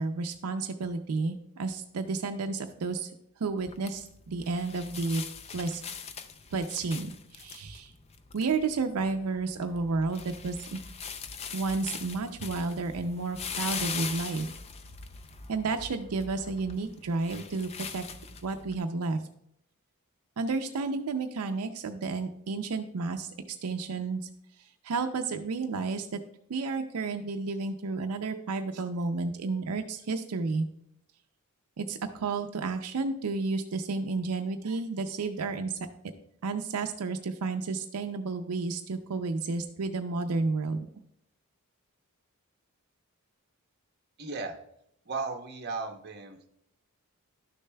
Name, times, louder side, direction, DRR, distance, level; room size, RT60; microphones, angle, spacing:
voice 1, 0.0-3.1 3.4-5.2 5.5-5.8 6.5-7.9 8.3-10.8 11.5-14.5 15.5-18.0 18.4-19.2 20.4-24.3 24.6-26.2 26.5-30.7 31.8-35.8 36.4-40.9, right 3 dB, 80° right, 6 dB, 0.5 m, -31 dB
sound 1, 3.6-18.8, left 6 dB, 30° left, 0.4 m, -41 dB
voice 2, 44.2-44.6 45.1-46.5, right 4 dB, 45° right, 4 dB, 0.8 m, -35 dB
12.0 x 6.6 x 2.2 m, 0.75 s
head